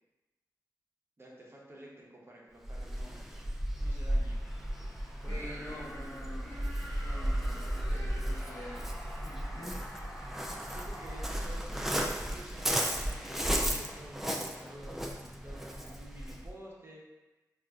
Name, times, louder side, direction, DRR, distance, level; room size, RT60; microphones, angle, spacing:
voice 1, 1.2-3.2 3.8-4.5 5.2-5.9 10.1-17.0, right 1 dB, 35° right, -4 dB, 0.8 m, -51 dB
Waves surf, 2.6-16.5, equal, 5° right, 0.4 m, -35 dB
sound 1, 3.7-12.5, equal, 25° left, 0.8 m, -48 dB
voice 2, 4.9-6.5 7.0-8.9 9.2-9.9, equal, 50° left, -6 dB, 1.0 m, -46 dB
4.1 x 2.4 x 2.3 m, 1.1 s
cardioid pair, 60°, 7 cm